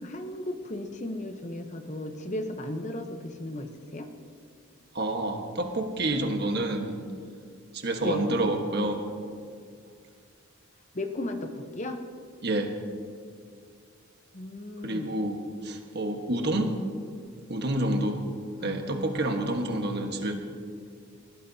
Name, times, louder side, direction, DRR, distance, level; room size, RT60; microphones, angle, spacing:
voice 1, 0.0-4.1 8.0-8.3 10.9-12.0 14.3-15.1 18.6-19.5, left 1 dB, 35° left, 6 dB, 0.9 m, -36 dB
voice 2, 4.9-7.0 7.7-9.1 12.4-12.8 14.8-16.8 17.5-18.2 18.6-20.3, right 1 dB, 50° right, 4 dB, 1.4 m, -28 dB
20.0 x 17.0 x 2.8 m, 2.2 s
head